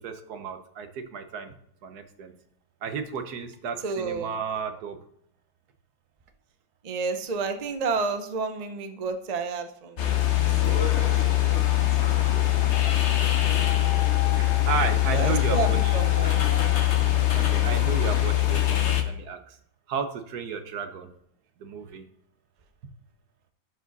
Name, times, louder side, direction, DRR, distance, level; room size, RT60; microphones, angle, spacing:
voice 1, 0.0-1.5 1.8-2.3 2.8-5.0 11.5-12.0 12.2-13.6 14.0-14.1 14.3-15.8 17.3-19.6 19.9-21.1 21.6-22.0, right 6 dB, 60° right, 8 dB, 1.4 m, -34 dB
voice 2, 3.8-4.4 6.8-11.8 13.4-14.0 15.1-16.8, right 4 dB, 80° right, 7 dB, 0.3 m, -32 dB
sound 1, 10.0-19.0, left 14 dB, 45° left, 1.0 m, -22 dB
12.0 x 5.0 x 4.0 m, 0.70 s
omnidirectional pair, 2.0 m